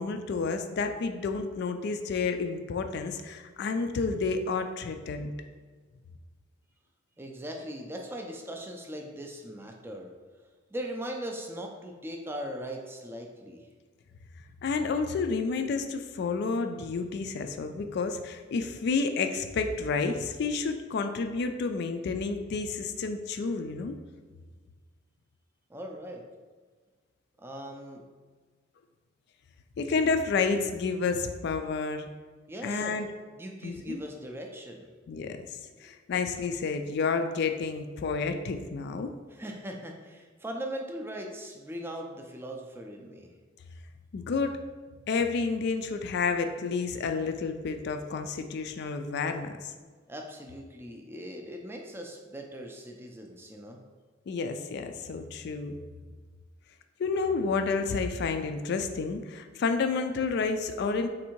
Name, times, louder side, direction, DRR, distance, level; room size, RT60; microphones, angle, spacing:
voice 1, 0.0-5.3 14.6-24.0 29.8-32.1 32.6-33.1 33.6-34.0 35.1-35.4 35.8-39.1 44.1-44.6 45.1-49.7 54.3-55.7 57.0-61.1, left 4 dB, 55° left, 7 dB, 0.3 m, -30 dB
voice 2, 7.2-10.1 10.7-13.7 25.7-26.2 27.4-28.0 32.5-33.0 33.3-34.9 35.9-36.0 39.3-43.3 50.1-53.8, equal, 10° right, 2 dB, 0.4 m, -39 dB
3.6 x 2.6 x 4.3 m, 1.4 s
head